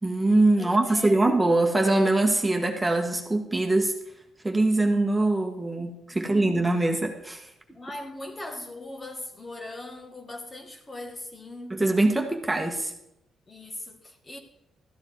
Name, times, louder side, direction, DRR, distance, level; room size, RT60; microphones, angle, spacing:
voice 1, 0.0-3.9 4.4-7.5 11.7-12.9, right 2 dB, 10° right, 1.6 m, -23 dB
voice 2, 0.6-1.2 6.1-6.6 7.7-11.8 13.5-14.4, left 1 dB, 30° left, 1.9 m, -40 dB
13.5 x 10.5 x 4.7 m
cardioid pair, 100°, 0 cm